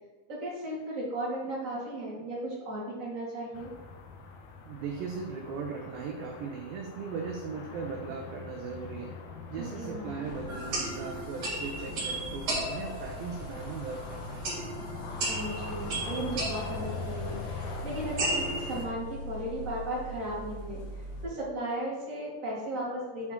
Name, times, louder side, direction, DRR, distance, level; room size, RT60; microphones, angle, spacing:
voice 1, 0.3-3.7 9.6-10.3 15.3-20.8 21.2-23.3, right 1 dB, 30° right, -7 dB, 1.7 m, -36 dB
sound 1, 3.5-18.9, left 4 dB, 80° left, 2.3 m, -42 dB
voice 2, 4.7-9.1 9.5-14.5, right 5 dB, 80° right, 2 dB, 2.1 m, -38 dB
sound 2, 10.2-21.3, equal, 35° left, 1.6 m, -43 dB
sound 3, 10.5-18.8, right 1 dB, 45° right, 2.5 m, -36 dB
9.4 x 4.7 x 3.7 m, 1.3 s
omnidirectional pair, 4.8 m